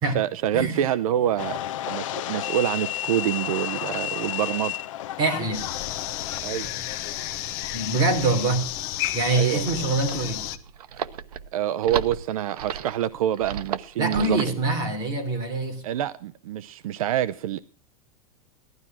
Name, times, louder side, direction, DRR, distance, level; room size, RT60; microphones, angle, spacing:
voice 1, 0.1-1.6 1.9-4.8 6.4-6.7 9.3-9.8 11.5-14.6 15.8-17.6, right 11 dB, 65° right, 0.6 m, -26 dB
sound 1, 1.4-6.4, left 13 dB, 60° left, 0.8 m, -32 dB
voice 2, 5.2-5.7 7.7-8.6 9.1-10.4 14.0-15.8, right 2 dB, 20° right, 3.3 m, -24 dB
sound 2, 5.5-10.6, left 13 dB, 35° left, 1.0 m, -32 dB
sound 3, 9.5-14.6, right 9 dB, 85° right, 1.0 m, -34 dB
16.5 x 12.5 x 6.0 m
supercardioid pair, 175°, 19 cm